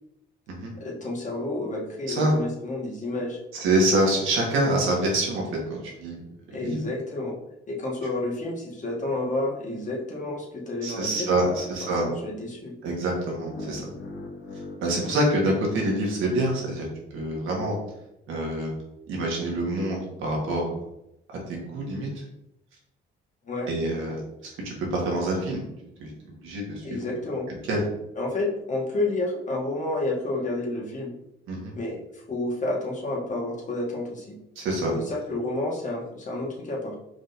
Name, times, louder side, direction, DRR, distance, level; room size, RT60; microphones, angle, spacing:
voice 1, 0.8-3.4 6.5-7.4 7.7-12.7 23.4-23.7 26.8-27.5 28.2-31.1 31.7-34.4 34.9-37.0, left 2 dB, 40° left, -2 dB, 1.4 m, -30 dB
voice 2, 3.5-5.4 5.7-6.8 10.8-12.1 12.8-13.8 14.8-16.8 17.1-17.7 18.3-18.7 19.1-20.7 21.3-22.1 23.7-24.2 24.6-25.6 26.0-26.1 26.4-27.1 27.7-27.8 31.5-31.7 34.5-34.9, right 1 dB, 90° right, -2 dB, 1.5 m, -26 dB
sound 1, 13.4-16.5, left 2 dB, 65° left, 0.9 m, -41 dB
4.9 x 3.8 x 2.6 m, 0.84 s
cardioid pair, 90°, 20 cm